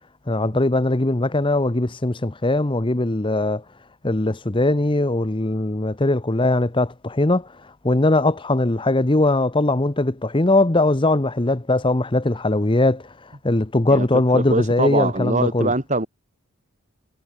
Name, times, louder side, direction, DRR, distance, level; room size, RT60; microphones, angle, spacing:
voice 1, 0.3-3.6 4.0-15.7, left 2 dB, 20° left, 0.9 m, -20 dB
voice 2, 14.3-16.1, right 2 dB, 35° right, 5.2 m, -23 dB
head